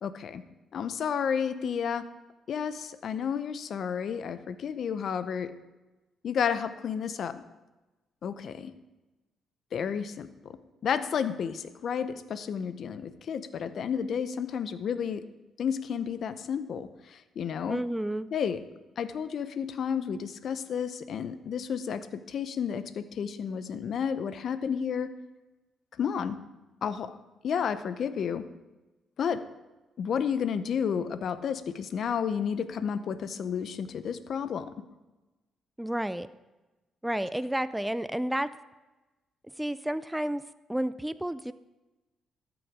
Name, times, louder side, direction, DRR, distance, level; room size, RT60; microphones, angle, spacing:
voice 1, 0.0-0.4 0.7-2.0 2.5-5.5 6.2-7.4 8.2-8.7 9.7-10.5 10.8-15.2 15.6-17.8 18.3-18.6 19.0-25.1 26.0-26.4 26.8-27.2 27.4-28.4 29.2-29.4 30.0-34.7, left 7 dB, 60° left, 12 dB, 0.6 m, -31 dB
voice 2, 17.7-18.3 35.8-36.3 37.0-38.5 39.6-40.4 40.7-41.5, right 1 dB, 5° right, 14 dB, 0.3 m, -31 dB
13.5 x 6.2 x 4.8 m, 1.1 s
cardioid pair, 90°, 0 cm